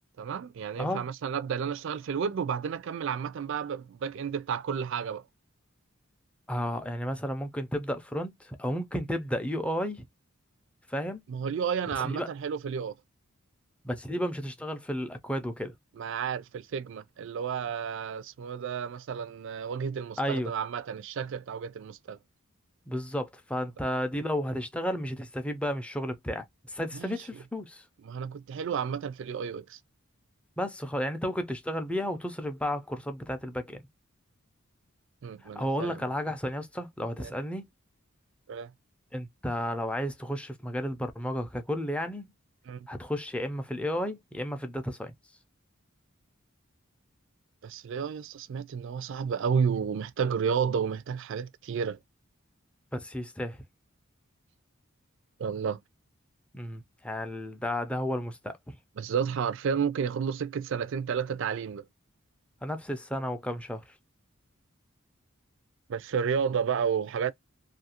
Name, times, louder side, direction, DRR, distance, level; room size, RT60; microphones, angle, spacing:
voice 1, 0.2-5.2 11.3-12.9 16.0-22.2 26.9-27.2 28.0-29.8 35.2-36.0 37.2-37.3 38.5-38.7 42.7-42.8 47.6-52.0 55.4-55.8 59.0-61.8 65.9-67.3, right 7 dB, 60° right, 0.3 m, -31 dB
voice 2, 6.5-10.0 10.9-11.2 12.0-12.3 13.8-15.7 20.2-20.5 22.9-27.8 30.6-33.8 35.6-37.7 39.1-42.3 42.9-45.1 52.9-53.6 56.5-58.8 62.6-63.8, equal, 5° left, 0.4 m, -32 dB
2.7 x 2.4 x 2.7 m
head